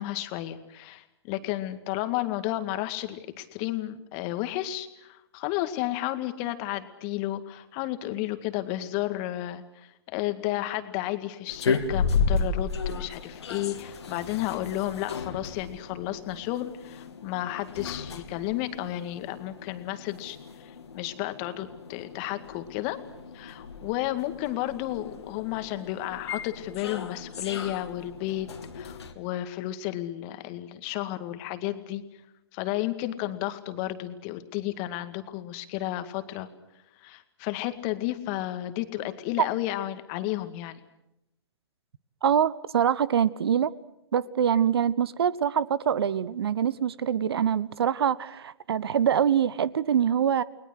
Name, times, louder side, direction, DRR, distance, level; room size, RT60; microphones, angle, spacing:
voice 1, 0.0-23.0 23.3-28.5 28.7-32.0 32.5-36.5 37.0-40.8, left 15 dB, 35° left, 9 dB, 2.1 m, -32 dB
sound 1, 11.5-29.1, left 5 dB, 70° left, 2.7 m, -34 dB
voice 2, 42.2-43.7 44.1-50.4, right 8 dB, 60° right, 20 dB, 0.9 m, -24 dB
30.0 x 21.0 x 6.5 m, 0.86 s
figure-of-eight pair, 125°, 14 cm